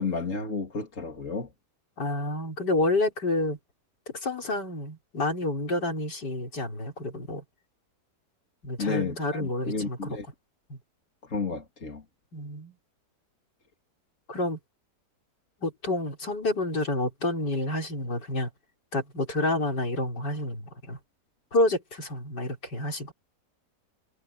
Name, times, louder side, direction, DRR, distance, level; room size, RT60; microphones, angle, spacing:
voice 1, 0.0-1.5 8.8-10.3 11.2-12.0, left 4 dB, 45° left, 3.4 m, -32 dB
voice 2, 2.0-3.6 4.2-7.4 8.6-10.2 10.7-10.8 12.3-12.7 14.3-14.6 15.6-18.5 18.9-21.0 21.5-23.1, left 2 dB, 80° left, 5.3 m, -29 dB
omnidirectional pair, 1.8 m